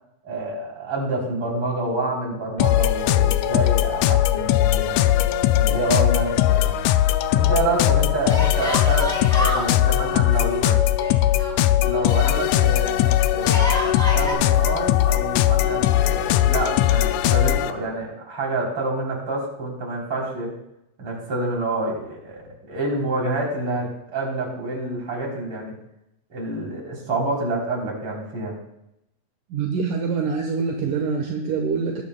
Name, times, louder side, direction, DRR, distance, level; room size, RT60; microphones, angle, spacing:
voice 1, 0.2-5.0 5.5-6.8 7.3-10.8 11.7-20.5 21.0-25.7 26.3-28.6, right 2 dB, 40° right, -2 dB, 4.1 m, -28 dB
sound 1, 2.6-17.7, left 13 dB, 90° left, 1.6 m, -19 dB
Yell, 5.0-5.9 6.2-6.3 8.3-9.7 11.0-12.4 13.3-14.3, equal, ahead, 3.5 m, -29 dB
voice 2, 29.5-32.0, right 5 dB, 75° right, 2 dB, 2.6 m, -25 dB
20.0 x 10.5 x 2.2 m, 0.82 s
omnidirectional pair, 3.9 m